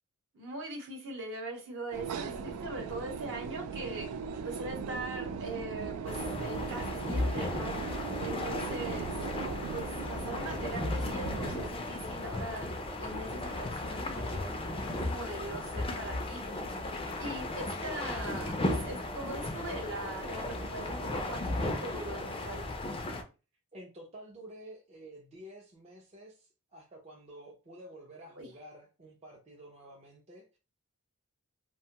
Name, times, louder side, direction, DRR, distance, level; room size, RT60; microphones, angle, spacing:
voice 1, 0.3-4.1 4.4-9.1 9.7-12.7 13.0-14.5 14.9-16.5 17.2-22.7 28.3-28.5, right 2 dB, 60° right, 1 dB, 0.9 m, -41 dB
sound 1, 1.9-11.7, right 6 dB, 85° right, 0.3 m, -39 dB
sound 2, 6.1-23.2, left 2 dB, 25° left, 0.4 m, -35 dB
voice 2, 23.7-30.6, right 1 dB, 30° right, -2 dB, 0.5 m, -50 dB
2.6 x 2.2 x 2.8 m, 0.32 s
head